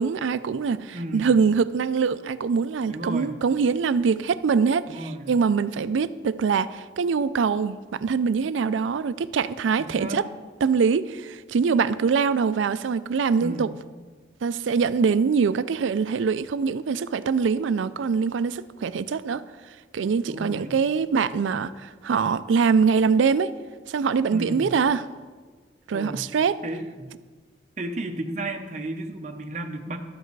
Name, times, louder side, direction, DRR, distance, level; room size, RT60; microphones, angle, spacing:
voice 1, 0.0-10.2 10.6-13.7 14.4-19.4 19.9-23.5 23.9-25.1 25.9-26.6, right 5 dB, 90° right, 15 dB, 0.4 m, -23 dB
voice 2, 0.9-1.3 2.9-3.4 4.9-5.4 9.8-10.3 13.4-13.7 20.3-20.8 24.3-24.7 25.9-26.3 26.6-27.1 27.8-30.0, right 1 dB, 40° right, 5 dB, 0.9 m, -33 dB
12.0 x 8.0 x 4.7 m, 1.4 s
head